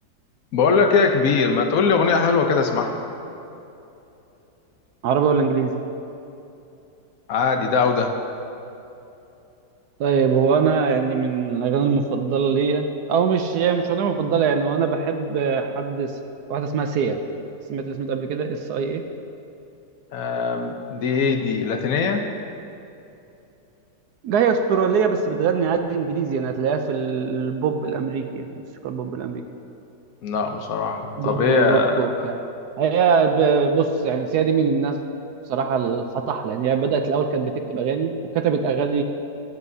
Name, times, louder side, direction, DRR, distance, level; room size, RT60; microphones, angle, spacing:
voice 1, 0.5-3.0 7.3-8.1 20.1-22.3 30.2-32.0, left 5 dB, 60° left, 5 dB, 1.1 m, -21 dB
voice 2, 5.0-5.7 10.0-16.1 16.5-17.2 17.7-19.0 24.2-28.5 28.8-29.4 31.2-32.4 32.8-35.0 35.5-39.0, right 6 dB, 70° right, 6 dB, 1.0 m, -22 dB
18.5 x 8.0 x 2.7 m, 2.8 s
omnidirectional pair, 1.9 m